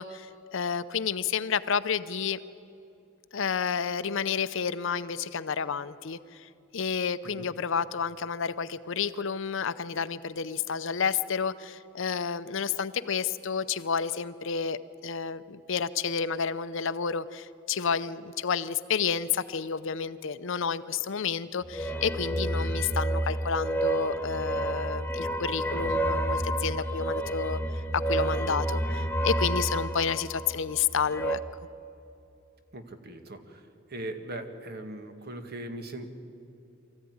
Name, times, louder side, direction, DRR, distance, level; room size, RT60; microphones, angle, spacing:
voice 1, 0.0-2.4 3.3-27.6 27.9-31.4, left 6 dB, 65° left, 14 dB, 0.6 m, -30 dB
sound 1, 21.6-31.4, right 1 dB, 10° left, 0.9 m, -30 dB
voice 2, 32.7-36.1, right 1 dB, 50° right, 6 dB, 1.8 m, -40 dB
24.0 x 14.5 x 9.6 m, 2.7 s
head